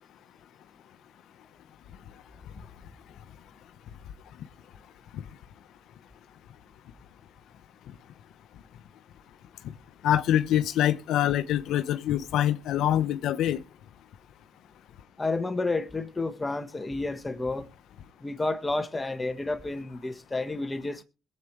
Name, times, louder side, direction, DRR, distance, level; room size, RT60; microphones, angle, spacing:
voice 1, 10.0-13.6, left 11 dB, 85° left, 0.9 m, -25 dB
voice 2, 15.2-17.7 18.2-21.0, left 2 dB, 20° left, 1.3 m, -30 dB
21.5 x 8.1 x 3.2 m
cardioid pair, 90°, 0 cm